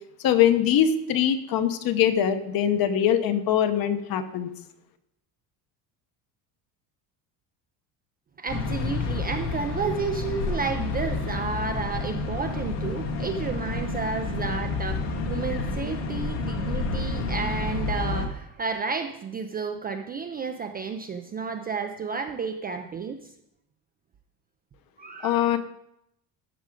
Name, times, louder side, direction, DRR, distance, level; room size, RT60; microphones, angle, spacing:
voice 1, 0.2-4.5 25.2-25.6, left 9 dB, 50° left, 9 dB, 1.0 m, -22 dB
voice 2, 8.4-23.3 25.0-25.6, right 5 dB, 25° right, 6 dB, 0.3 m, -31 dB
sound 1, 8.5-18.3, left 3 dB, 80° left, 1.8 m, -29 dB
13.0 x 4.9 x 5.0 m, 0.79 s
cardioid pair, 150°, 44 cm